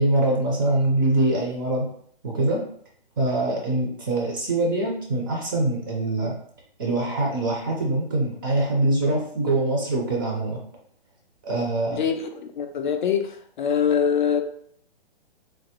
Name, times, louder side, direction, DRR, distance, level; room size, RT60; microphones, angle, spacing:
voice 1, 0.0-1.9 2.2-2.6 3.2-6.3 6.8-10.6 11.4-12.0, right 2 dB, 20° right, 0.4 m, -23 dB
voice 2, 11.9-12.3 12.6-13.3 13.6-14.4, left 7 dB, 50° left, 0.4 m, -23 dB
3.2 x 2.1 x 2.8 m
hypercardioid pair, 150°, 30 cm